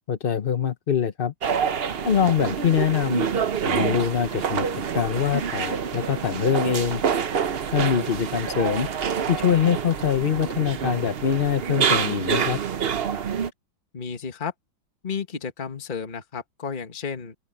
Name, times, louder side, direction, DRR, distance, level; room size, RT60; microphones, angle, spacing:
voice 1, 0.1-1.3 2.0-3.3 3.7-7.0 7.7-8.9 9.3-12.6, left 8 dB, 45° left, 0.7 m, -24 dB
sound 1, 1.4-13.5, right 7 dB, 50° right, 0.7 m, -27 dB
voice 2, 13.9-14.5 15.0-17.3, left 6 dB, 25° left, 1.6 m, -32 dB
open air
omnidirectional pair, 2.1 m